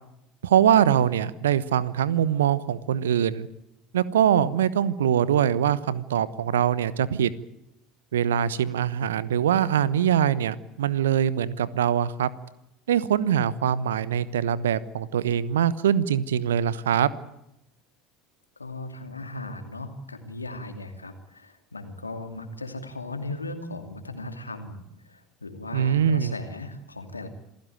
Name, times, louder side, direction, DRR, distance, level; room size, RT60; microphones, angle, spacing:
voice 1, 0.4-3.5 3.9-7.3 8.1-12.3 12.9-17.1 25.7-26.3, right 9 dB, 75° right, 18 dB, 1.1 m, -23 dB
voice 2, 18.6-27.3, left 2 dB, 85° left, 7 dB, 2.6 m, -37 dB
27.0 x 16.0 x 9.3 m, 0.85 s
figure-of-eight pair, 70°, 0 cm